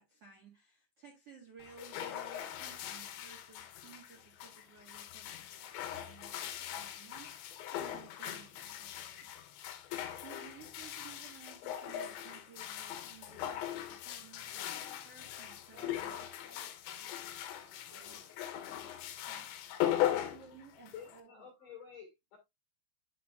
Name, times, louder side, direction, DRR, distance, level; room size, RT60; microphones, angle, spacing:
voice 1, 0.0-16.3 18.7-19.0 19.3-19.5 20.3-21.5, right 6 dB, 80° right, 1.3 m, -57 dB
sound 1, 1.6-21.2, left 11 dB, 75° left, 2.9 m, -40 dB
voice 2, 15.7-17.1 17.5-18.3 20.0-20.1, right 3 dB, 30° right, 3.4 m, -57 dB
voice 3, 20.9-22.4, left 8 dB, 55° left, 2.7 m, -50 dB
11.0 x 5.6 x 2.4 m
omnidirectional pair, 6.0 m